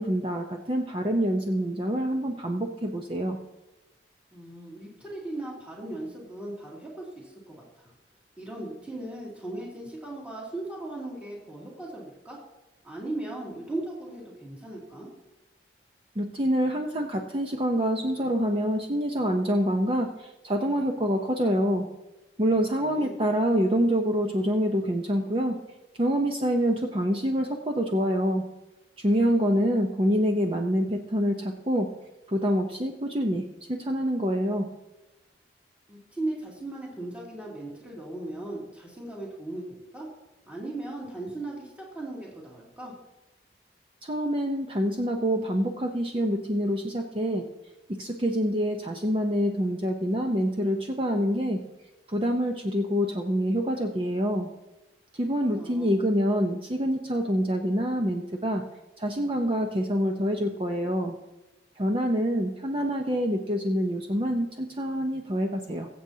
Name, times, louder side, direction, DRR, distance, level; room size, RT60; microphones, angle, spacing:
voice 1, 0.0-3.4 16.2-21.9 22.4-25.6 26.0-28.4 29.0-31.9 32.3-34.7 44.0-47.5 47.9-51.6 52.1-54.5 55.1-58.6 59.0-61.1 61.8-65.9, equal, 30° right, 3 dB, 0.7 m, -26 dB
voice 2, 4.3-7.9 8.4-12.4 12.8-15.1 22.4-23.1 35.9-40.1 40.5-42.9 55.2-55.9, right 2 dB, 10° right, -5 dB, 2.5 m, -38 dB
22.0 x 7.8 x 2.8 m, 1.0 s
head